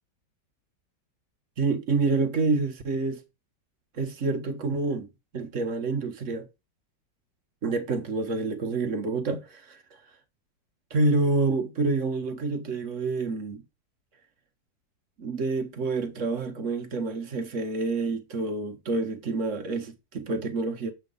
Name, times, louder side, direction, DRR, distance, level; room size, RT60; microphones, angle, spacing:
voice 1, 1.6-3.2 3.9-6.5 7.6-9.8 10.9-13.6 15.2-20.9, right 3 dB, 50° right, 1.2 m, -28 dB
7.7 x 3.4 x 5.3 m
omnidirectional pair, 1.9 m